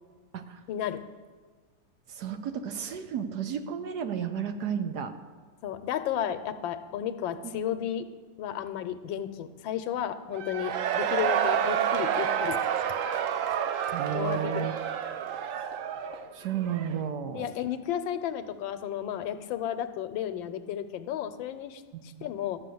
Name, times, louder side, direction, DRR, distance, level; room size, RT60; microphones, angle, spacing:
voice 1, 0.7-1.0 5.6-8.0 8.4-12.6 14.1-14.7 17.3-22.6, left 10 dB, 90° left, 11 dB, 1.4 m, -33 dB
voice 2, 2.1-5.1 13.9-14.7 16.3-17.5 21.9-22.3, right 8 dB, 65° right, 8 dB, 1.2 m, -33 dB
Cheering / Crowd, 10.3-17.1, right 9 dB, 80° right, 0.7 m, -29 dB
12.5 x 6.2 x 7.8 m, 1.4 s
omnidirectional pair, 2.1 m